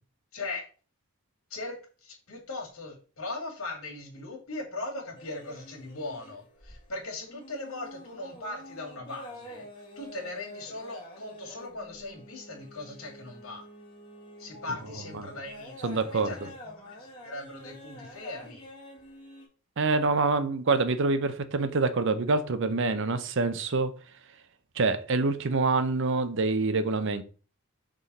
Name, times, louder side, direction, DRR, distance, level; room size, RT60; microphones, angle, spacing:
voice 1, 0.3-0.6 1.5-1.7 2.0-9.7 10.0-13.7 14.4-15.7 16.1-16.4 16.6-17.0 17.2-18.7, left 2 dB, 75° left, 2.3 m, -39 dB
sound 1, 5.1-6.9 7.2-19.4, equal, 20° left, 1.7 m, -47 dB
voice 2, 15.8-16.5 19.8-23.9 24.8-27.2, right 3 dB, 55° right, 0.6 m, -26 dB
6.4 x 3.7 x 4.1 m
head